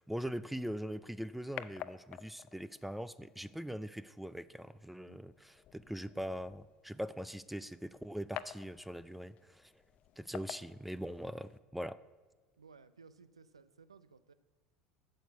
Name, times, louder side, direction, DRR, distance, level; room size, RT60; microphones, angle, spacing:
voice 1, 0.0-9.7 10.2-12.0, equal, 5° right, 16 dB, 0.4 m, -42 dB
sound 1, 0.6-11.6, left 12 dB, 50° left, 0.5 m, -51 dB
voice 2, 12.6-14.3, right 5 dB, 90° right, 15 dB, 0.5 m, -58 dB
9.0 x 6.7 x 8.0 m, 1.4 s
hypercardioid pair, 75°, 3 cm